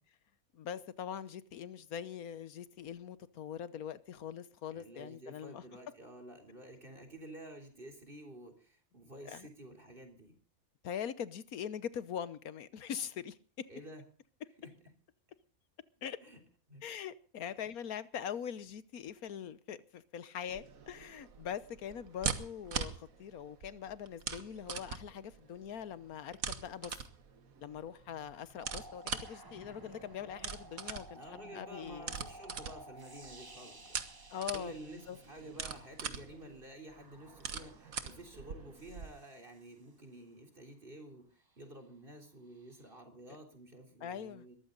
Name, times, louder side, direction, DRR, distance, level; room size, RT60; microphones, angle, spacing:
voice 1, 0.5-5.6 9.3-9.5 10.8-13.7 16.0-16.2 16.8-26.9 27.6-32.1 34.3-35.2 44.0-44.5, left 8 dB, 85° left, 1.5 m, -42 dB
voice 2, 4.7-10.4 13.7-14.1 14.6-14.7 16.2-16.4 16.7-16.8 17.5-17.6 31.1-44.6, right 1 dB, 40° right, 3.8 m, -51 dB
sound 1, 20.5-39.1, right 6 dB, 70° right, 1.8 m, -43 dB
sound 2, 28.6-36.2 36.9-39.9 42.6-43.0, right 1 dB, 20° right, 0.9 m, -55 dB
21.5 x 14.5 x 3.9 m
omnidirectional pair, 1.5 m